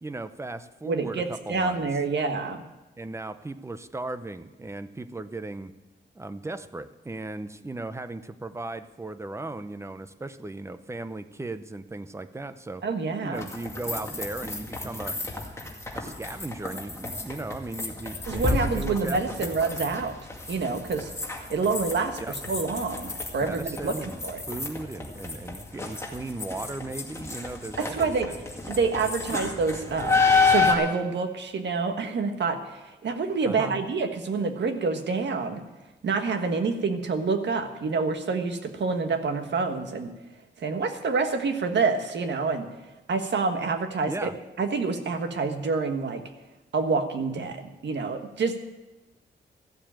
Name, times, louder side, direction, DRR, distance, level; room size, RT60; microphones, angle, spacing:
voice 1, 0.0-1.9 3.0-5.7 6.1-12.8 13.2-15.2 15.9-19.6 22.2-22.3 23.4-28.4 33.4-33.8 44.1-44.3, right 2 dB, 15° right, 11 dB, 0.7 m, -37 dB
voice 2, 0.8-2.6 12.8-13.4 18.3-20.1 20.5-21.1 21.5-24.4 27.8-28.3 28.7-35.6 36.0-40.1 40.6-42.7 43.1-44.3 44.6-46.2 46.7-47.6 47.8-48.6, right 4 dB, 70° right, 6 dB, 1.5 m, -27 dB
sound 1, 13.4-30.7, left 4 dB, 15° left, 2.1 m, -30 dB
14.5 x 7.5 x 8.9 m, 1.1 s
wide cardioid pair, 125°, 19 cm